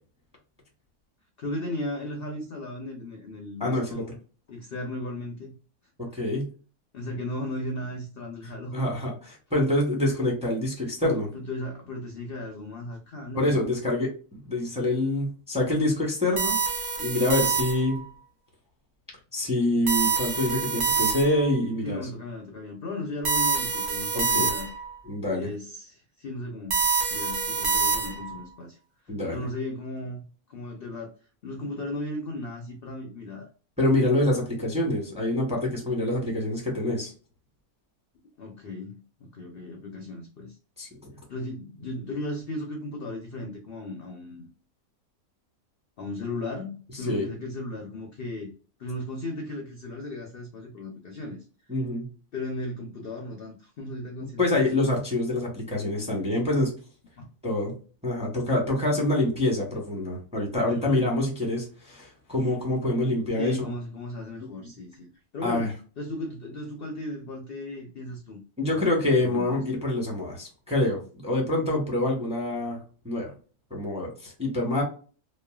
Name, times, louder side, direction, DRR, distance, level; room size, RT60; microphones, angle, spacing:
voice 1, 1.4-4.1 4.5-5.5 6.9-8.8 11.3-13.6 21.8-24.7 25.3-28.8 29.3-31.2 31.4-33.5 38.4-38.9 39.2-40.6 41.3-44.5 46.0-48.5 48.8-51.4 52.3-54.7 57.2-57.3 60.7-61.2 63.4-68.9 69.2-69.6, left 1 dB, 65° left, 3 dB, 0.5 m, -36 dB
voice 2, 3.6-4.0 6.0-6.5 8.7-11.3 13.3-14.1 14.5-16.6 17.0-18.0 19.3-22.0 24.1-24.5 25.1-25.5 29.1-29.5 33.8-37.1 40.8-41.1 47.0-47.3 51.7-52.1 54.4-56.7 57.4-57.7 58.0-63.7 64.6-64.7 65.4-65.7 68.6-72.8 73.0-73.3 73.7-74.8, left 1 dB, 5° right, -2 dB, 0.7 m, -26 dB
sound 1, 16.4-18.0 19.9-21.5 23.2-24.9 26.7-28.4, right 5 dB, 60° right, 0.5 m, -26 dB
3.1 x 2.1 x 2.2 m, 0.37 s
omnidirectional pair, 1.6 m